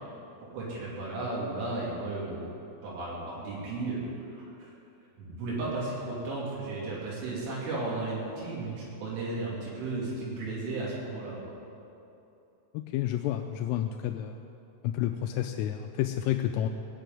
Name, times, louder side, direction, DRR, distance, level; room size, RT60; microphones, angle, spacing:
voice 1, 0.5-2.4 2.8-4.0 4.3-4.7 5.2-11.4, right 2 dB, 75° right, -6 dB, 5.2 m, -34 dB
voice 2, 12.7-14.4 14.8-16.7, left 12 dB, 85° left, 5 dB, 3.1 m, -30 dB
19.0 x 6.8 x 9.1 m, 2.8 s
omnidirectional pair, 5.8 m